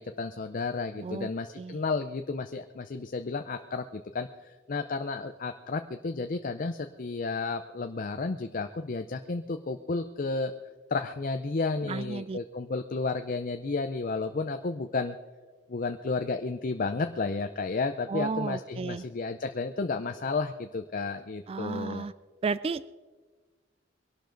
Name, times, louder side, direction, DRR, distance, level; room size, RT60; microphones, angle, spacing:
voice 1, 0.0-10.5 10.9-15.2 15.7-22.1, left 3 dB, 45° left, 8 dB, 0.6 m, -32 dB
voice 2, 1.0-1.3 1.6-1.8 11.8-12.4 18.1-19.1 21.5-22.1 22.4-22.9, right 4 dB, 30° right, 16 dB, 0.3 m, -33 dB
22.5 x 12.0 x 3.9 m, 1.4 s
head